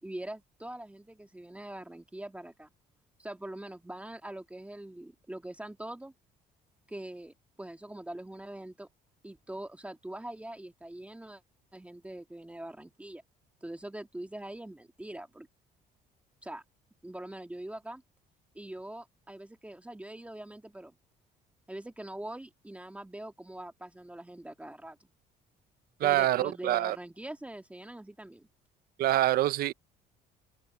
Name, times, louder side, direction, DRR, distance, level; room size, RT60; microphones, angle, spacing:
voice 1, 0.0-2.7 3.2-6.1 6.9-8.9 9.2-11.4 11.7-13.2 13.6-15.5 16.4-16.6 17.0-18.0 18.5-21.0 21.7-25.1 26.0-28.5, right 1 dB, 10° right, 1.9 m, -43 dB
voice 2, 26.0-27.0 29.0-29.7, right 14 dB, 65° right, 0.6 m, -25 dB
open air
cardioid pair, 110°, 17 cm